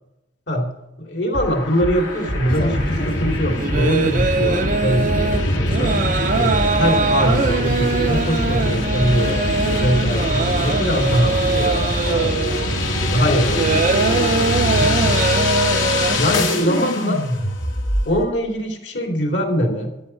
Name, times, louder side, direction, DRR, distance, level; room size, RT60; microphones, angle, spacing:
voice 1, 0.5-5.9 6.3-12.5 13.0-15.2 16.1-17.2 18.0-19.9, equal, 60° left, 2 dB, 2.9 m, -23 dB
sound 1, 1.3-18.2, left 2 dB, 85° left, 2.9 m, -24 dB
sound 2, 1.9-16.2, right 4 dB, 40° right, 0.6 m, -23 dB
sound 3, 2.5-15.2, equal, 45° left, 2.1 m, -26 dB
13.5 x 11.0 x 4.6 m, 0.89 s
head